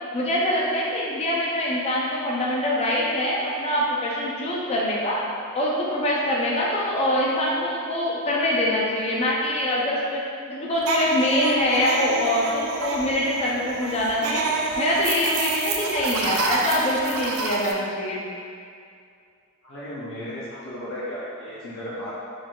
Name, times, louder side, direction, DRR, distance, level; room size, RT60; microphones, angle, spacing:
voice 1, 0.1-5.2 5.5-10.2 10.5-14.4 14.8-18.2, left 1 dB, 30° left, -4 dB, 0.5 m, -24 dB
sound 1, 10.8-17.7, right 4 dB, 80° right, 0.4 m, -28 dB
voice 2, 19.6-22.1, equal, 65° left, -9 dB, 0.7 m, -34 dB
4.0 x 3.8 x 2.3 m, 2.3 s
head